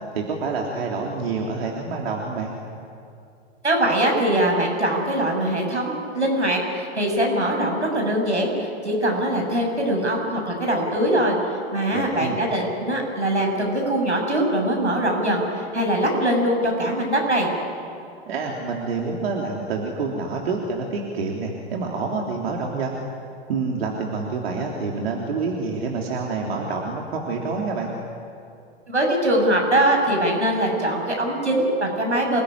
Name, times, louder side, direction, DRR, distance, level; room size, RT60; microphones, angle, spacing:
voice 1, 0.2-2.5 11.9-12.5 18.3-23.0 23.5-27.9, right 4 dB, 65° right, -1 dB, 3.6 m, -27 dB
voice 2, 3.6-11.4 11.7-17.5 28.9-32.4, right 1 dB, 90° right, 1 dB, 7.3 m, -22 dB
27.5 x 20.0 x 10.0 m, 2.5 s
figure-of-eight pair, 100°, 33 cm